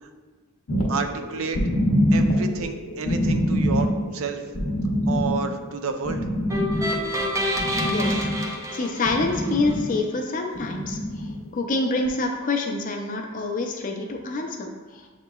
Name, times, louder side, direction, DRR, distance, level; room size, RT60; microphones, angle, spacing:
sound 1, 0.7-8.5 8.9-9.8 10.6-11.3 12.1-12.2, equal, 80° left, 0.8 m, -25 dB
voice 1, 0.9-1.6 2.1-4.4 5.1-6.2, right 5 dB, 75° right, 6 dB, 0.4 m, -30 dB
sound 2, 6.5-9.7, equal, 15° right, 0.4 m, -28 dB
voice 2, 7.8-8.2 8.7-11.0 11.5-15.0, left 3 dB, 40° left, 3 dB, 0.5 m, -26 dB
7.8 x 2.9 x 2.3 m, 1.4 s
head